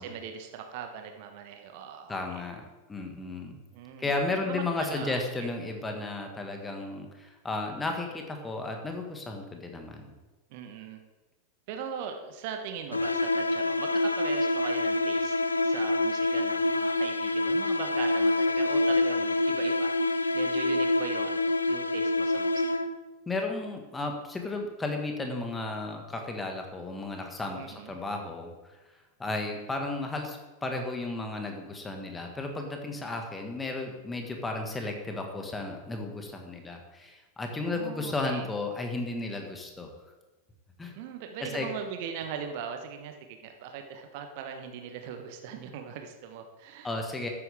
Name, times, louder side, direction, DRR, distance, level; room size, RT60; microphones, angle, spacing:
voice 1, 0.0-2.4 3.7-5.5 10.5-11.0 11.7-22.8 27.6-28.0 37.6-38.5 41.0-43.1 43.4-46.9, right 7 dB, 50° right, 5 dB, 1.2 m, -40 dB
voice 2, 2.1-2.6 2.9-3.5 4.0-10.1 23.2-28.5 29.2-39.9 40.8-40.9 41.4-41.7 46.8-47.3, left 2 dB, 10° left, 3 dB, 1.8 m, -34 dB
sound 1, 12.9-23.1, left 2 dB, 80° left, 0.5 m, -26 dB
12.5 x 9.4 x 3.6 m, 1.2 s
figure-of-eight pair, 90°, 0 cm